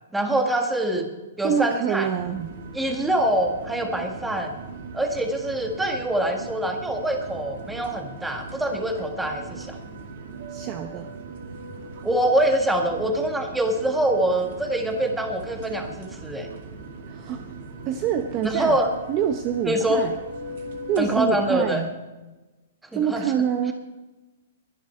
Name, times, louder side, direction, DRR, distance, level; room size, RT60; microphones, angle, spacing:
voice 1, 0.1-1.1 1.4-2.1 2.7-4.6 4.9-9.8 12.0-16.5 18.4-18.9 19.7-20.0 21.0-21.8 22.9-23.2, right 1 dB, 5° right, 4 dB, 1.6 m, -24 dB
voice 2, 1.4-2.5 10.5-11.1 17.1-17.4 17.8-18.8 19.1-20.2 20.9-21.9 22.9-23.7, right 8 dB, 25° right, 6 dB, 0.8 m, -26 dB
sound 1, 2.2-21.6, right 3 dB, 50° right, 2.4 m, -39 dB
22.0 x 10.5 x 4.5 m, 1.1 s
hypercardioid pair, 160°, 0 cm